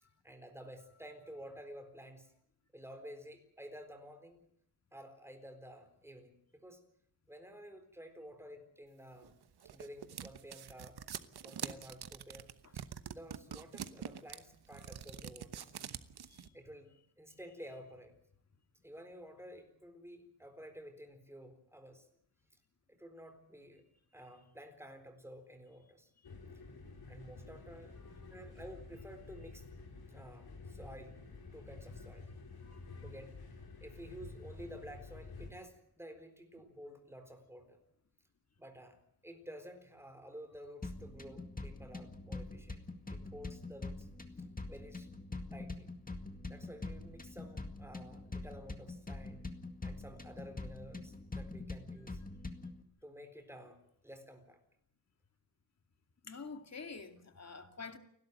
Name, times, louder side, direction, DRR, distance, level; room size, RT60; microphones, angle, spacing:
voice 1, 0.2-2.3 2.7-4.4 4.9-6.8 7.3-9.3 9.6-11.0 11.4-12.5 13.1-15.7 16.5-18.1 18.8-22.1 22.9-23.8 24.1-26.1 27.1-27.9 28.3-29.7 30.1-31.2 31.5-32.3 33.0-33.4 33.8-37.8 38.6-39.0 39.2-42.8 43.1-44.1 44.7-45.1 45.5-45.9 46.5-49.5 49.8-52.2 53.0-53.8 54.0-54.6, equal, 5° right, 4.0 m, -52 dB
sound 1, 9.2-16.5, right 8 dB, 80° right, 1.2 m, -45 dB
sound 2, 26.2-35.5, left 3 dB, 70° left, 4.6 m, -50 dB
voice 2, 32.6-33.1 56.2-58.0, left 4 dB, 40° left, 2.3 m, -48 dB
sound 3, 40.8-52.8, left 2 dB, 20° left, 2.0 m, -44 dB
30.0 x 12.5 x 9.1 m
wide cardioid pair, 150°, 39 cm